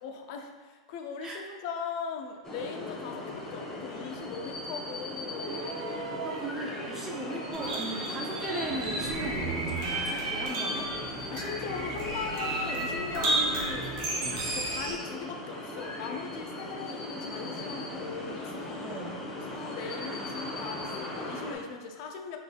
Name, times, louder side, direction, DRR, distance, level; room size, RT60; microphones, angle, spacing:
voice 1, 0.0-6.0 6.9-7.1 11.3-13.9 14.5-19.1 19.5-22.4, left 5 dB, 55° left, 4 dB, 0.5 m, -39 dB
sound 1, 2.4-21.5, left 2 dB, 15° left, 0.8 m, -38 dB
sound 2, 5.4-8.9 10.3-10.4, right 4 dB, 65° right, 0.5 m, -41 dB
voice 2, 6.2-10.9 18.8-19.2, right 2 dB, 15° right, -2 dB, 0.5 m, -37 dB
sound 3, 7.5-14.9, right 2 dB, 50° right, 1.0 m, -32 dB
4.0 x 3.6 x 2.3 m, 1.4 s
hypercardioid pair, 115°, 3 cm